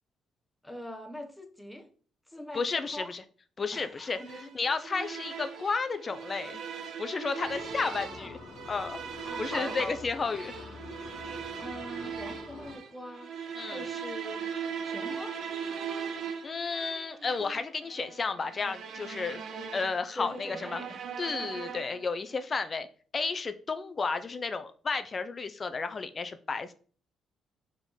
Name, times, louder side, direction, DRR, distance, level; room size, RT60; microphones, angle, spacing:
voice 1, 0.6-1.9 2.3-3.1 3.7-4.5 5.0-5.1 7.8-8.4 9.2-10.9 11.6-13.3 13.7-14.5 14.8-15.4 20.2-21.1, left 1 dB, 5° left, 4 dB, 1.1 m, -43 dB
voice 2, 2.5-3.2 3.6-4.2 4.5-6.6 7.0-8.4 8.7-9.0 9.4-10.5 13.6-13.8 16.4-19.4 19.7-20.8 21.2-22.9 23.1-26.7, left 4 dB, 35° left, 10 dB, 0.7 m, -32 dB
sound 1, 4.1-22.1, right 7 dB, 70° right, 1.0 m, -40 dB
sound 2, 7.4-12.8, left 4 dB, 70° left, 1.4 m, -47 dB
5.1 x 3.8 x 5.1 m, 0.42 s
cardioid pair, 90°, 0 cm